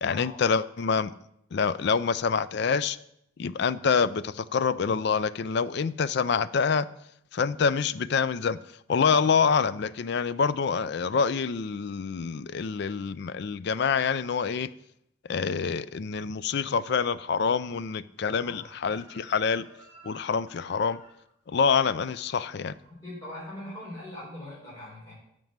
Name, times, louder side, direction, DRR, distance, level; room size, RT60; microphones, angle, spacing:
voice 1, 0.0-1.1 1.5-3.0 3.4-6.9 7.3-8.6 8.9-14.7 15.3-19.6 20.0-21.0 21.5-22.8, left 5 dB, 55° left, 0.4 m, -26 dB
Chicken rooster, 18.6-23.5 23.8-24.2, right 1 dB, 20° right, 3.5 m, -55 dB
voice 2, 23.0-25.1, left 1 dB, 15° left, 3.9 m, -41 dB
9.1 x 5.3 x 7.3 m
head